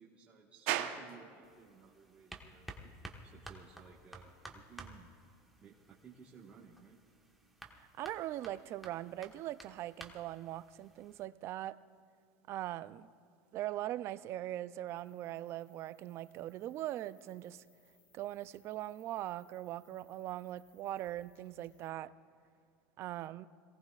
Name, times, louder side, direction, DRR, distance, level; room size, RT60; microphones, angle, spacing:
voice 1, 0.0-2.9 3.2-5.1 5.6-7.0, right 6 dB, 20° right, 1.4 m, -57 dB
sound 1, 0.7-18.1, right 12 dB, 70° right, 1.0 m, -49 dB
sound 2, 1.4-11.2, right 1 dB, ahead, 1.3 m, -54 dB
voice 2, 8.0-11.8 12.5-13.1 13.5-17.6 18.1-22.1 23.0-23.5, right 14 dB, 45° right, 0.4 m, -41 dB
sound 3, 14.9-21.9, left 5 dB, 50° left, 3.4 m, -71 dB
26.5 x 18.0 x 2.4 m
supercardioid pair, 135°, 6 cm